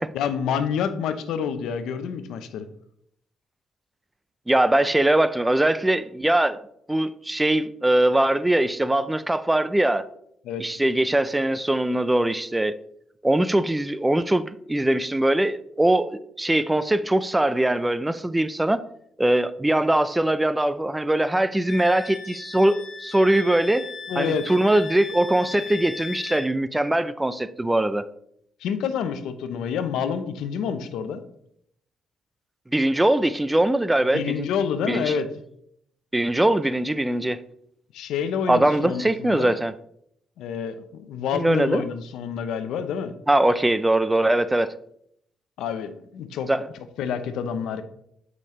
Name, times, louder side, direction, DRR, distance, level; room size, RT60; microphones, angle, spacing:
voice 1, 0.1-2.7 10.4-10.6 24.1-24.4 28.6-31.2 34.1-35.3 37.9-39.6 40.4-43.1 45.6-46.5 47.0-47.8, left 7 dB, 85° left, 0.7 m, -28 dB
voice 2, 4.5-6.6 6.9-10.0 10.6-12.7 13.2-14.4 14.7-18.8 19.2-23.9 24.2-28.1 32.7-34.5 34.9-35.1 36.1-37.4 38.5-39.7 41.3-41.8 43.3-44.7 46.5-46.7, right 1 dB, 10° right, 0.4 m, -21 dB
Wind instrument woodwind instrument, 21.7-26.5, left 4 dB, 55° left, 2.2 m, -38 dB
8.3 x 5.3 x 3.2 m
cardioid pair, 90°, 0 cm